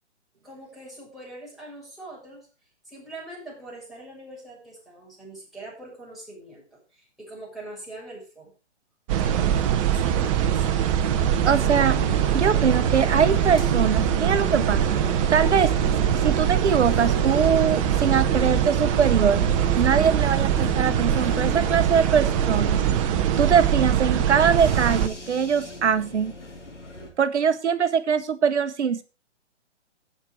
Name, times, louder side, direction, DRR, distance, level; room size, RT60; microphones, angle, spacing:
voice 1, 0.4-2.5 2.8-8.5 9.2-10.8, right 2 dB, ahead, -7 dB, 7.0 m, -42 dB
sound 1, 9.1-25.1, right 9 dB, 30° right, 1.1 m, -22 dB
voice 2, 11.4-12.0 12.3-15.0 15.3-15.7 16.1-19.4 19.8-22.8 23.4-26.3 27.2-29.0, right 7 dB, 70° right, 12 dB, 1.0 m, -22 dB
sound 2, 11.6-27.1, equal, 90° left, 4.4 m, -36 dB
16.5 x 6.8 x 4.8 m, 0.32 s
figure-of-eight pair, 135°, 35 cm